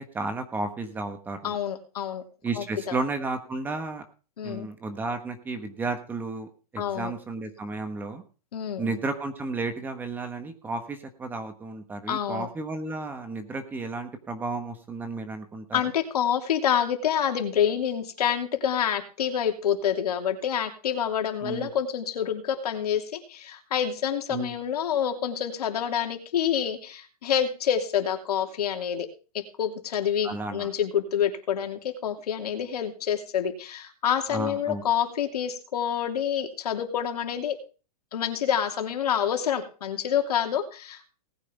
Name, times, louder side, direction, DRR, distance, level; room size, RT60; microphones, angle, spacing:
voice 1, 0.0-1.5 2.4-4.0 4.4-8.2 8.8-15.8 21.4-21.7 24.3-24.5 30.2-30.7 34.3-34.8, right 3 dB, 10° right, 7 dB, 1.4 m, -33 dB
voice 2, 1.4-2.2 2.6-3.0 4.4-4.7 6.8-7.1 8.5-8.9 12.1-12.5 15.7-29.1 29.3-37.6 38.1-41.1, left 9 dB, 80° left, 4 dB, 3.0 m, -27 dB
19.0 x 9.5 x 3.5 m, 0.35 s
hypercardioid pair, 160°, 20 cm